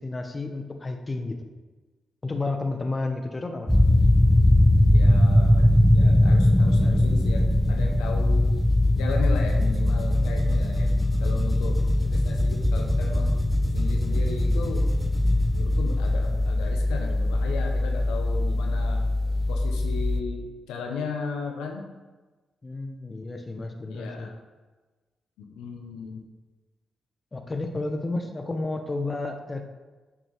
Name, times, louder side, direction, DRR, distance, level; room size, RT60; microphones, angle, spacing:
voice 1, 0.0-1.4 2.2-3.7 22.6-24.3 27.3-29.6, left 2 dB, 35° left, 5 dB, 1.4 m, -31 dB
sound 1, 3.7-20.2, left 1 dB, 5° left, 0.9 m, -21 dB
voice 2, 4.9-8.5 8.9-10.9 11.2-13.4 13.7-14.9 15.5-19.0 19.5-21.9 23.9-24.3 25.4-26.2, left 5 dB, 85° left, 2 dB, 1.0 m, -36 dB
9.5 x 6.1 x 4.8 m, 1.2 s
hypercardioid pair, 40°, 0 cm